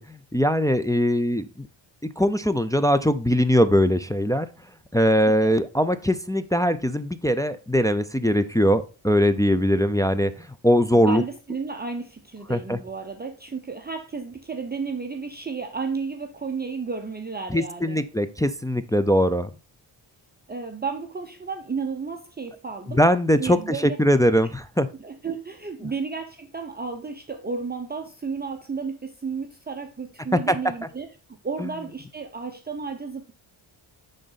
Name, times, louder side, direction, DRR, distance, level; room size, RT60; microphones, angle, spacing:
voice 1, 0.0-1.7 2.2-4.5 4.9-11.2 12.5-12.8 17.5-19.5 22.9-24.9 30.5-30.6 31.6-31.7, equal, 10° left, 0.4 m, -21 dB
voice 2, 10.9-18.0 20.5-23.0 23.4-24.0 25.0-31.1 31.4-33.3, right 5 dB, 20° right, 0.8 m, -33 dB
10.0 x 3.9 x 4.0 m
wide cardioid pair, 100°, 48 cm